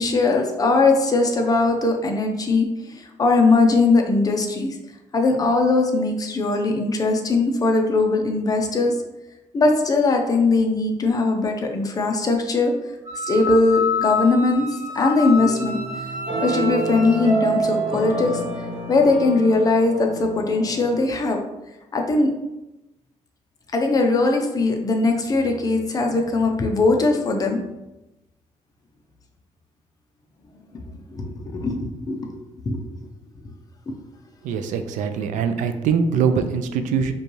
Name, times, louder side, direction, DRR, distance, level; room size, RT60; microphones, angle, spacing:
voice 1, 0.0-2.7 3.0-4.8 5.1-9.0 9.5-12.7 13.2-14.7 14.9-15.8 16.4-18.3 18.9-21.4 21.9-22.3 23.7-27.6 30.9-32.3 32.7-32.8, left 3 dB, 30° left, 3 dB, 0.5 m, -20 dB
Wind instrument woodwind instrument, 13.1-17.3, left 4 dB, 20° right, 1.2 m, -28 dB
sound 1, 15.4-20.9, right 3 dB, 40° right, 1.1 m, -28 dB
voice 2, 34.4-37.1, right 6 dB, 85° right, 8 dB, 0.4 m, -22 dB
5.1 x 2.3 x 3.1 m, 0.97 s
cardioid pair, 135°, 13 cm